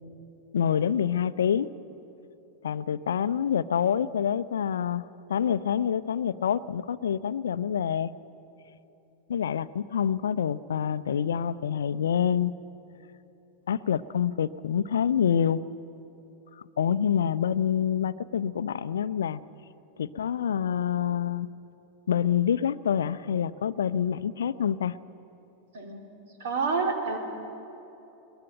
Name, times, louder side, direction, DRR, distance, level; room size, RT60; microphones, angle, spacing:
voice 1, 0.5-1.7 2.6-8.1 9.3-12.5 13.7-15.6 16.6-19.4 20.0-21.5 22.1-25.0, left 8 dB, 65° left, 16 dB, 0.6 m, -27 dB
voice 2, 26.4-27.2, right 4 dB, 55° right, 3 dB, 3.4 m, -28 dB
21.5 x 20.5 x 9.1 m, 3.0 s
figure-of-eight pair, 90°, 0 cm